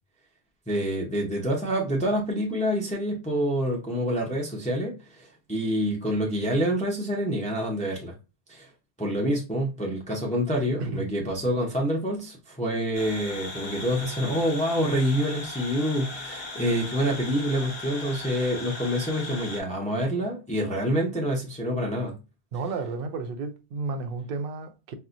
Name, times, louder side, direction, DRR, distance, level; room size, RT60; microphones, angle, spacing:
voice 1, 0.7-8.1 8.5-8.7 9.0-22.2, equal, 10° left, 0.6 m, -27 dB
voice 2, 10.8-11.1 22.5-24.9, right 4 dB, 65° right, 0.7 m, -32 dB
sound 1, 12.9-19.6, left 2 dB, 45° left, 0.7 m, -38 dB
4.3 x 2.1 x 2.5 m
omnidirectional pair, 1.1 m